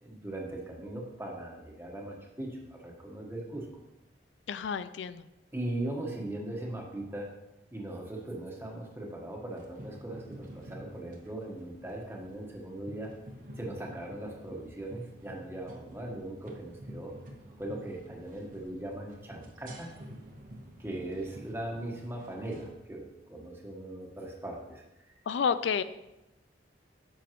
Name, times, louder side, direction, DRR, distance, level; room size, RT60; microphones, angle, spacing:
voice 1, 0.0-3.7 5.5-7.3 7.7-13.2 13.6-17.2 17.6-19.9 20.8-25.1, right 1 dB, 15° right, -1 dB, 1.3 m, -39 dB
voice 2, 4.5-5.2 25.3-25.8, left 6 dB, 80° left, 13 dB, 0.4 m, -30 dB
sound 1, 9.5-22.8, equal, 45° right, 1.0 m, -49 dB
10.0 x 6.9 x 3.0 m, 0.95 s
head